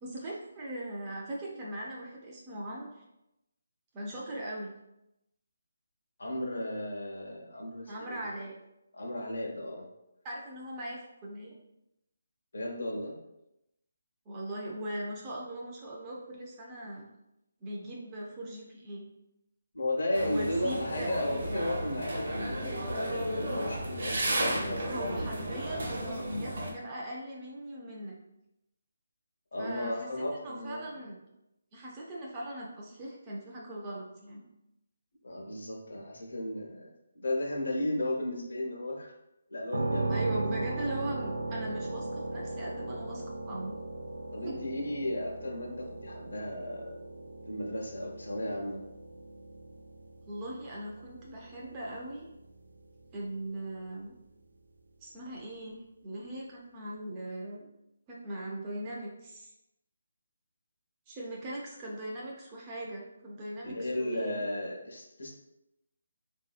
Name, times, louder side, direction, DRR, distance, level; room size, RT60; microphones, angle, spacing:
voice 1, 0.0-3.0 3.9-4.7 7.9-8.5 10.2-11.5 14.3-17.1 17.6-19.1 20.2-21.1 24.8-28.2 29.6-31.2 31.7-34.4 40.1-43.8 44.4-44.6 50.3-52.3 53.1-54.1 55.0-57.7 58.1-59.5 61.1-64.4, right 1 dB, 15° right, -4 dB, 0.3 m, -40 dB
voice 2, 6.2-8.2 8.9-9.9 12.5-13.2 19.7-25.3 25.7-26.5 29.5-30.9 35.2-39.1 39.5-40.4 44.3-47.0 47.5-48.8 63.6-65.3, left 1 dB, 75° left, 0 dB, 0.8 m, -35 dB
sound 1, 20.1-26.7, right 1 dB, 50° right, 0.6 m, -33 dB
sound 2, 39.7-53.5, right 2 dB, 90° right, 0.4 m, -38 dB
3.0 x 2.6 x 2.4 m, 0.87 s
hypercardioid pair, 175°, 0 cm